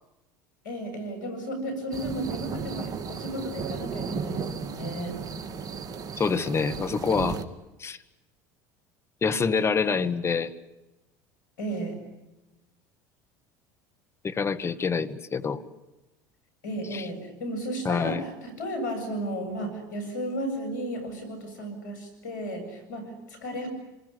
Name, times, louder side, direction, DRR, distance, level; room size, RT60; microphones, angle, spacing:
voice 1, 0.6-5.2 11.6-12.0 16.6-23.7, right 1 dB, 85° left, 8 dB, 7.4 m, -34 dB
sound 1, 1.9-7.4, right 5 dB, 40° right, 2.2 m, -34 dB
voice 2, 6.2-7.4 7.8-8.0 9.2-10.5 14.2-15.6 16.9-17.0 17.9-18.2, left 5 dB, 25° left, 11 dB, 1.9 m, -26 dB
26.5 x 20.5 x 9.7 m, 1.0 s
hypercardioid pair, 80°, 10 cm